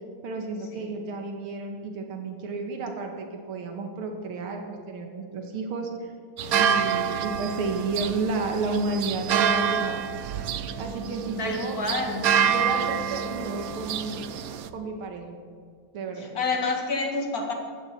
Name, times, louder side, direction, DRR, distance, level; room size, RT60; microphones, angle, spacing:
voice 1, 0.2-6.1 6.6-10.0 10.8-11.8 12.4-14.2 14.7-15.4 15.9-16.3, right 3 dB, 85° right, 3 dB, 2.3 m, -31 dB
sound 1, 6.4-14.7, right 7 dB, 70° right, 0.8 m, -27 dB
voice 2, 11.4-12.3 16.2-17.5, left 3 dB, 45° left, 2 dB, 2.3 m, -29 dB
15.0 x 14.0 x 4.4 m, 2.2 s
omnidirectional pair, 2.3 m